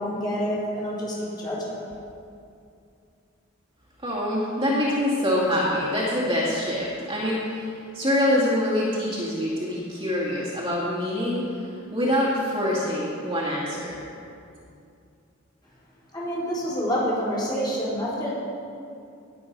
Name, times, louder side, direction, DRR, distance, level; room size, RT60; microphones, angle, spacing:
voice 1, 0.0-1.7 16.1-18.3, equal, 20° left, -8 dB, 4.1 m, -27 dB
voice 2, 4.0-14.0, left 1 dB, 20° right, -7 dB, 2.2 m, -25 dB
19.5 x 7.8 x 5.4 m, 2.5 s
head